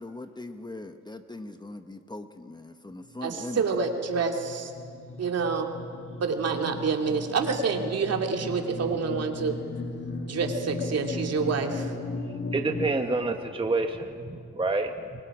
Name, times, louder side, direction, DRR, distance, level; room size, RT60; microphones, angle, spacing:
voice 1, 0.0-3.8, left 2 dB, 15° left, 7 dB, 1.2 m, -40 dB
sound 1, 3.1-12.9, left 2 dB, 40° left, 2.0 m, -37 dB
voice 2, 3.2-4.7 5.2-5.7 6.2-9.6 10.3-11.9, right 5 dB, 55° right, 3 dB, 2.8 m, -27 dB
voice 3, 12.5-15.2, right 3 dB, 15° right, 5 dB, 1.4 m, -28 dB
28.0 x 24.0 x 5.0 m, 2.1 s
cardioid pair, 90°, 30 cm